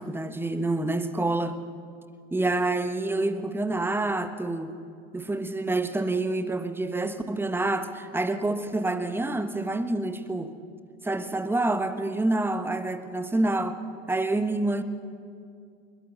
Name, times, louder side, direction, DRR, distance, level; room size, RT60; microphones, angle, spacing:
voice 1, 0.0-1.6 2.3-4.7 5.1-10.5 11.0-13.8 14.1-14.8, right 2 dB, 5° right, 10 dB, 1.1 m, -27 dB
22.0 x 21.5 x 6.8 m, 2.4 s
figure-of-eight pair, 85°, 39 cm